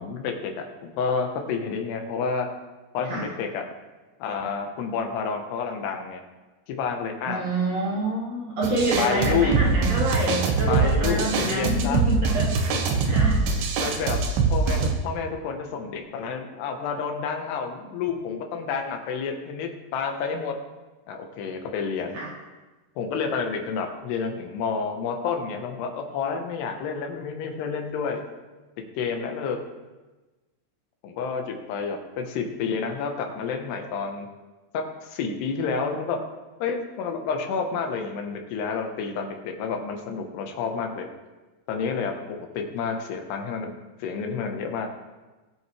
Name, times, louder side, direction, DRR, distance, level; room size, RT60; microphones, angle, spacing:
voice 1, 0.0-2.5 2.9-3.7 4.2-6.2 6.7-7.4 9.0-9.5 10.7-12.0 13.8-14.2 14.5-20.6 21.1-22.2 23.0-28.2 28.8-29.6 31.0-34.3 34.7-36.2 36.6-41.1 41.7-43.7 44.0-44.9, left 5 dB, 85° left, 4 dB, 3.2 m, -29 dB
voice 2, 7.3-12.5 13.0-13.5 22.1-22.3, right 2 dB, 55° right, -3 dB, 2.1 m, -27 dB
sound 1, 8.6-14.9, right 4 dB, 75° right, 3.1 m, -23 dB
21.0 x 7.5 x 3.3 m, 1.2 s
omnidirectional pair, 4.7 m